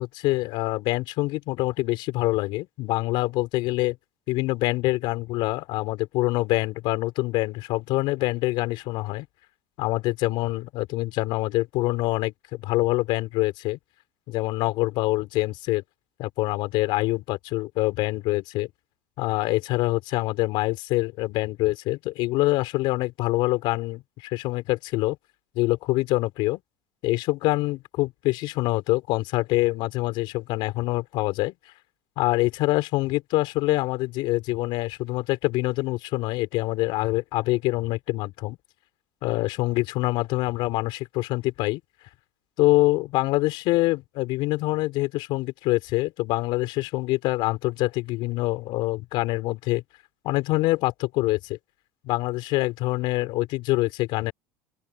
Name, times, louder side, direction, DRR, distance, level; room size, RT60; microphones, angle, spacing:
voice 1, 0.0-4.0 4.3-9.3 9.8-13.8 14.3-15.8 16.2-18.7 19.2-25.2 25.6-26.6 27.0-31.5 32.2-38.6 39.2-41.8 42.6-49.8 50.2-51.6 52.0-54.3, left 19 dB, 65° left, 5.2 m, -25 dB
open air
supercardioid pair, 100°, 9 cm